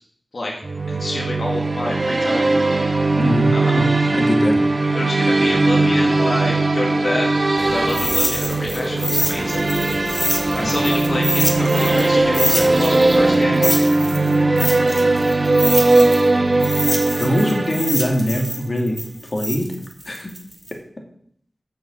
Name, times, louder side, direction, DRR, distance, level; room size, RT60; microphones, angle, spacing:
sound 1, 0.6-18.3, right 2 dB, 40° right, 1.2 m, -19 dB
voice 1, 0.9-2.5 3.5-3.8 4.9-7.3 7.6-9.7 10.5-13.7, left 1 dB, 65° left, -1 dB, 2.2 m, -27 dB
voice 2, 3.2-3.8 4.1-4.6 10.5-10.7 17.2-19.7 20.0-20.3, left 1 dB, 40° left, 1 dB, 2.3 m, -22 dB
sound 2, 7.6-13.4, right 1 dB, 15° right, 2.2 m, -29 dB
sound 3, 7.9-12.1 12.3-16.3 16.6-20.7, equal, 5° left, 2.4 m, -25 dB
8.8 x 6.2 x 7.1 m, 0.63 s
wide cardioid pair, 70°, 0 cm